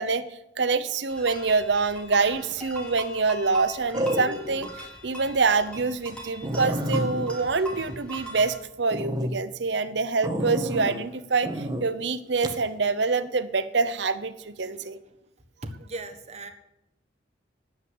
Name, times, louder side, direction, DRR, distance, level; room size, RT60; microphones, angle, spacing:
voice 1, 0.0-4.7 5.0-15.0, right 4 dB, 70° right, 13 dB, 0.8 m, -26 dB
sound 1, 1.1-8.6, right 1 dB, 5° left, 2.9 m, -41 dB
sound 2, 2.3-2.7 3.9-4.7 5.2-5.3 5.7-5.8 6.1-6.2 6.4-8.5 8.9-9.3 10.2-11.0 11.4-11.8 12.4-12.6, equal, 20° right, 1.4 m, -30 dB
voice 2, 14.6-15.2 15.6-16.5, right 2 dB, 35° right, 6 dB, 1.4 m, -39 dB
10.0 x 9.5 x 7.9 m, 0.87 s
head